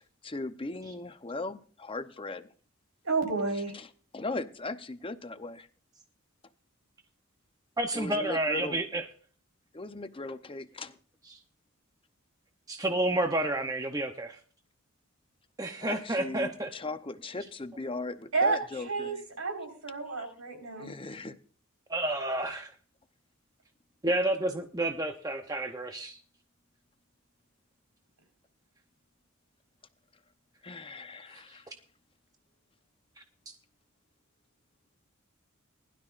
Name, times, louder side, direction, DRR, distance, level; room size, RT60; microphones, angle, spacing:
voice 1, 0.0-2.5 3.7-5.7 7.9-8.8 9.7-11.0 15.8-19.1 20.2-20.3 20.8-21.4 30.6-31.7, left 2 dB, 25° left, 10 dB, 0.8 m, -38 dB
voice 2, 3.0-3.7 18.3-18.6 18.8-20.9, right 4 dB, 90° right, 4 dB, 4.5 m, -30 dB
voice 3, 7.8-9.0 11.3-11.4 12.7-14.4 15.6-16.7 21.9-22.7 24.0-26.2 31.3-31.4, right 1 dB, 20° right, 5 dB, 0.8 m, -30 dB
20.0 x 12.0 x 2.5 m, 0.42 s
head